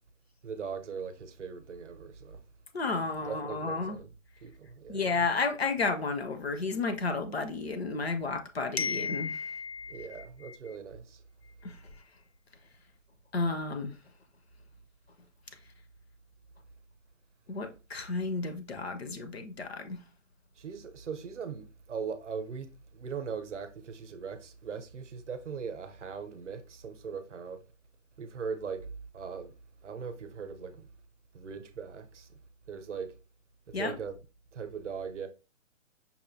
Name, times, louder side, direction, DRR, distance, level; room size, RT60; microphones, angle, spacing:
voice 1, 0.4-2.4 3.3-4.1 4.4-5.1 9.9-11.2 20.6-27.6 28.2-28.9 29.1-29.6 29.8-30.9 31.3-32.4 32.7-33.1 33.7-34.2 34.5-35.3, right 6 dB, 60° right, 0.6 m, -40 dB
voice 2, 2.7-4.0 4.9-10.6 11.6-11.8 13.3-13.9 17.5-20.0 33.7-34.0, left 4 dB, 50° left, 0.5 m, -32 dB
5.4 x 2.4 x 2.6 m
hypercardioid pair, 175°, 41 cm